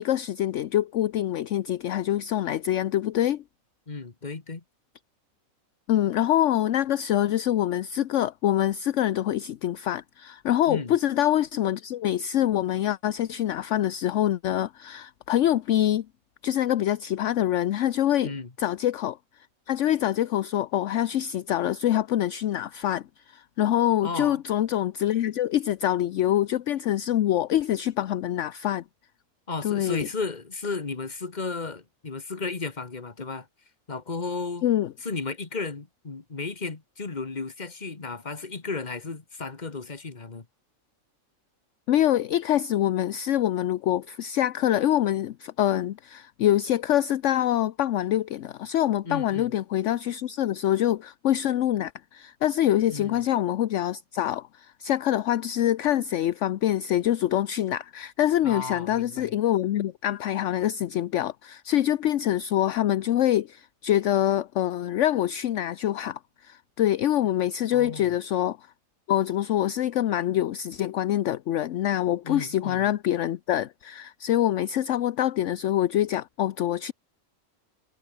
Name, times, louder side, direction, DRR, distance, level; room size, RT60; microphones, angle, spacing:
voice 1, 0.0-3.4 5.9-16.1 16.4-18.3 18.6-19.2 19.7-28.8 29.6-30.0 34.6-34.9 41.9-68.6 69.1-76.9, left 12 dB, 65° left, 1.0 m, -25 dB
voice 2, 3.9-4.6 10.7-11.0 18.2-18.5 24.0-24.4 29.5-33.5 33.9-34.7 35.0-40.5 49.0-49.5 52.9-53.2 58.4-59.3 67.7-68.1 72.2-72.9, left 4 dB, 30° left, 1.8 m, -34 dB
omnidirectional pair, 1.4 m